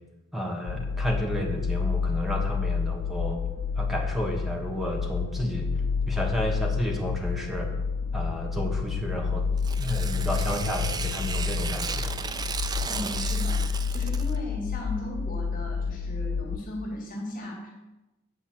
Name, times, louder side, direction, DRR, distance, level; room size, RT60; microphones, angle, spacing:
voice 1, 0.3-3.4 3.8-5.7 6.1-7.7 8.1-9.5 9.8-12.1, equal, ahead, 1 dB, 1.4 m, -31 dB
sound 1, 0.7-16.6, left 5 dB, 80° left, 0.4 m, -29 dB
Tearing, 9.6-14.4, right 5 dB, 20° right, 0.3 m, -35 dB
voice 2, 12.9-17.7, left 1 dB, 40° left, -2 dB, 2.3 m, -37 dB
8.6 x 5.1 x 7.7 m, 1.0 s
head